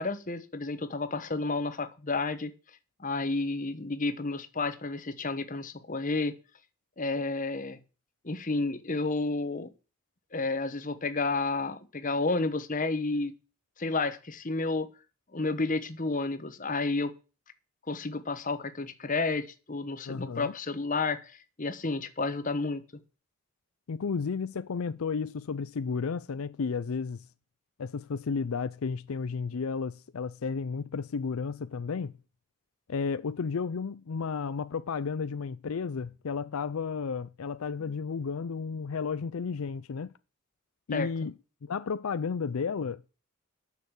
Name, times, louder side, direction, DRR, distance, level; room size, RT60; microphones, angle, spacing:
voice 1, 0.0-2.5 3.0-6.3 7.0-7.8 8.2-9.7 10.3-13.3 13.8-14.9 15.3-17.1 17.9-21.3 21.6-22.8 40.9-41.1, left 3 dB, 40° left, 1.2 m, -31 dB
voice 2, 20.1-20.5 23.9-27.3 27.8-32.1 32.9-40.1 40.9-41.3 41.6-43.1, left 5 dB, 80° left, 0.5 m, -33 dB
10.0 x 6.8 x 8.0 m
head